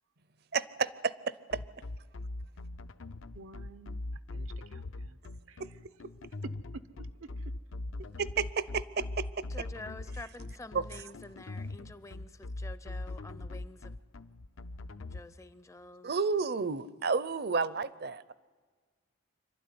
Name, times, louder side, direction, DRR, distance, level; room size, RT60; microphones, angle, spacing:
voice 1, 0.5-1.6 5.6-5.7 8.2-9.5 16.0-18.3, right 4 dB, 50° right, 17 dB, 0.6 m, -31 dB
sound 1, 1.5-15.2, left 2 dB, 75° left, 0.7 m, -40 dB
voice 2, 3.3-5.2 5.5-5.6 6.7-7.5, right 3 dB, 85° right, 12 dB, 0.8 m, -51 dB
voice 3, 9.5-14.0 15.1-16.1, left 2 dB, 15° left, 14 dB, 0.5 m, -48 dB
26.0 x 12.5 x 9.6 m, 1.5 s
head